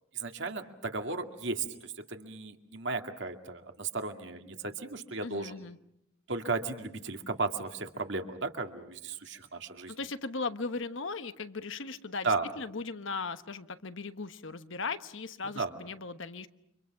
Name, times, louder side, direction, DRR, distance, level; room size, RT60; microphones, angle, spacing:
voice 1, 0.1-5.6 6.3-10.0 12.2-12.5 15.6-15.7, right 3 dB, 60° right, 5 dB, 2.2 m, -35 dB
voice 2, 5.2-5.8 9.9-16.5, left 4 dB, 65° left, 10 dB, 1.2 m, -38 dB
30.0 x 26.0 x 5.9 m, 0.79 s
head